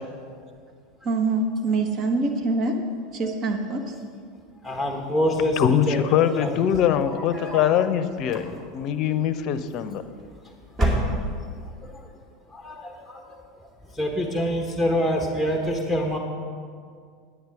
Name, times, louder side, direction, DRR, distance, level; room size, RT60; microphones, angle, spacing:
voice 1, 1.0-2.7 3.1-3.8, right 3 dB, 45° right, 4 dB, 1.3 m, -24 dB
voice 2, 4.6-6.5 7.3-7.7 11.6-12.1 12.5-13.4 13.9-16.2, equal, 5° right, 1 dB, 1.2 m, -27 dB
voice 3, 5.6-10.0, left 9 dB, 50° left, 11 dB, 0.6 m, -23 dB
sound 1, 6.5-7.7 8.2-8.9 9.9-10.4 10.7-11.6, right 1 dB, 25° right, 2.4 m, -28 dB
9.6 x 9.6 x 4.8 m, 2.1 s
hypercardioid pair, 85°, 0 cm